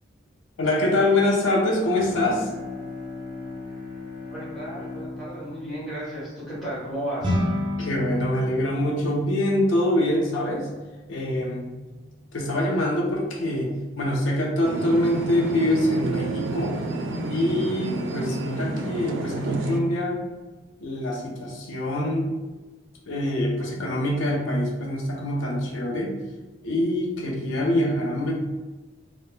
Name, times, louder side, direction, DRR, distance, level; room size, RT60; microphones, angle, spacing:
voice 1, 0.6-2.5 7.8-10.7 11.1-11.6 12.3-16.7 17.3-20.2 20.8-22.3 23.1-26.1 26.6-28.3, left 1 dB, 85° left, -1 dB, 0.5 m, -24 dB
Bowed string instrument, 2.0-7.4, left 3 dB, 40° left, 0.7 m, -39 dB
voice 2, 4.3-7.4, right 1 dB, ahead, -9 dB, 0.8 m, -34 dB
sound 1, 7.2-16.7, left 1 dB, 25° right, 0.4 m, -35 dB
sound 2, 14.6-19.8, right 2 dB, 85° right, 0.3 m, -30 dB
2.1 x 2.0 x 3.0 m, 1.2 s
head